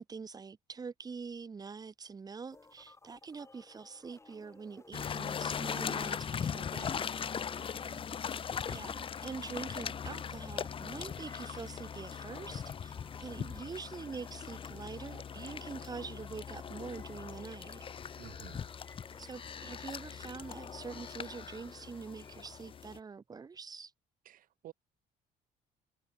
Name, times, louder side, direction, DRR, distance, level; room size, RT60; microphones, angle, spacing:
voice 1, 0.0-7.1 8.7-12.9 13.2-17.8 19.2-23.9, right 5 dB, 25° right, 0.8 m, -45 dB
sound 1, 2.5-22.4, left 3 dB, 15° left, 2.6 m, -59 dB
sound 2, 4.9-23.0, left 7 dB, 30° left, 0.6 m, -40 dB
voice 2, 7.7-8.0 18.2-18.7 24.2-24.7, right 14 dB, 55° right, 0.4 m, -52 dB
cardioid pair, 110°, 17 cm